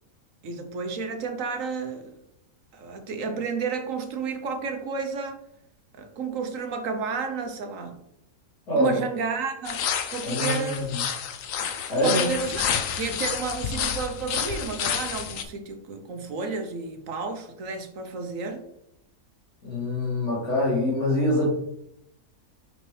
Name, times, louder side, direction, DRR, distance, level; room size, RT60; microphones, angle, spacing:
voice 1, 0.4-2.1 2.7-5.4 6.0-8.0 8.7-9.8 10.1-10.9 12.0-12.7 12.9-18.6, right 5 dB, 65° right, 6 dB, 1.2 m, -31 dB
voice 2, 8.7-9.0 10.2-11.0 11.9-12.3 19.6-21.5, left 1 dB, 90° left, -7 dB, 3.0 m, -24 dB
sound 1, 9.6-15.4, left 8 dB, 70° left, 1.0 m, -29 dB
5.9 x 5.4 x 3.2 m, 0.79 s
omnidirectional pair, 1.5 m